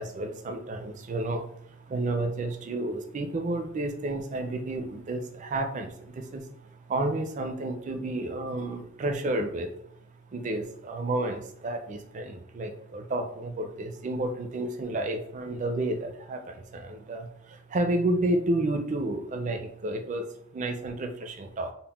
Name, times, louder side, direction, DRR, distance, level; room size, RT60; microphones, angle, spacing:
voice 1, 0.0-6.5 6.9-9.7 10.3-20.2 20.5-21.7, right 2 dB, 40° right, 5 dB, 0.4 m, -31 dB
5.4 x 2.1 x 2.3 m, 0.69 s
head